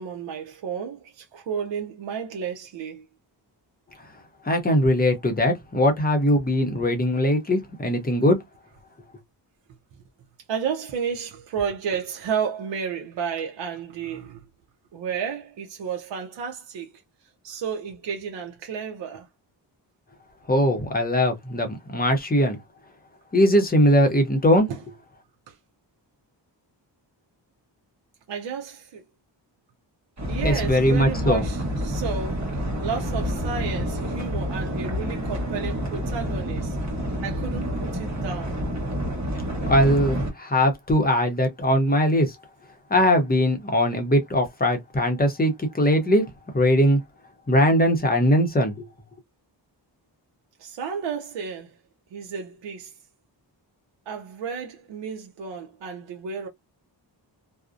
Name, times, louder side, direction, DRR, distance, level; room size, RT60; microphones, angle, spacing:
voice 1, 0.0-3.0 10.5-14.4 14.9-16.9 17.4-19.3 24.7-24.8 25.5-25.6 28.3-29.0 30.3-36.8 37.2-38.6 50.6-51.7 52.1-52.9 54.1-56.5, right 6 dB, 70° right, 0.6 m, -32 dB
voice 2, 4.4-8.4 20.5-22.6 23.3-24.7 30.4-31.4 39.7-42.3 42.9-46.2 46.5-47.0 47.5-48.9, equal, 20° left, 0.6 m, -20 dB
sound 1, 30.2-40.3, equal, 40° right, 0.9 m, -28 dB
2.5 x 2.0 x 2.4 m
wide cardioid pair, 140°, 45 cm